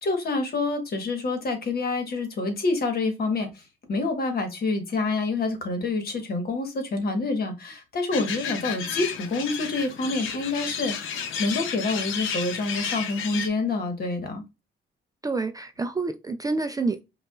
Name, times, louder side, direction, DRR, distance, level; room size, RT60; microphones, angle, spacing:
voice 1, 0.0-3.6 3.9-14.4, left 3 dB, 50° left, 1.3 m, -27 dB
sound 1, 8.1-13.5, left 7 dB, 80° left, 0.7 m, -32 dB
voice 2, 15.2-17.0, right 3 dB, 20° right, 0.4 m, -28 dB
5.2 x 2.4 x 2.4 m
cardioid pair, 90°, 20 cm